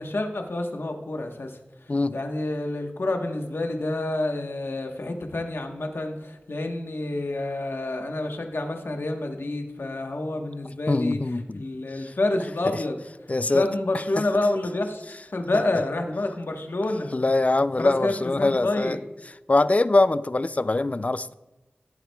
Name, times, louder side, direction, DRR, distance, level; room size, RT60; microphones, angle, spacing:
voice 1, 0.0-11.2 11.5-13.0 13.5-17.1 17.8-19.0, left 2 dB, 80° left, 1.1 m, -28 dB
voice 2, 10.9-11.6 13.3-13.7 17.1-19.0 19.5-21.3, left 2 dB, 40° left, 0.3 m, -23 dB
15.0 x 7.3 x 2.3 m
wide cardioid pair, 60°, 4 cm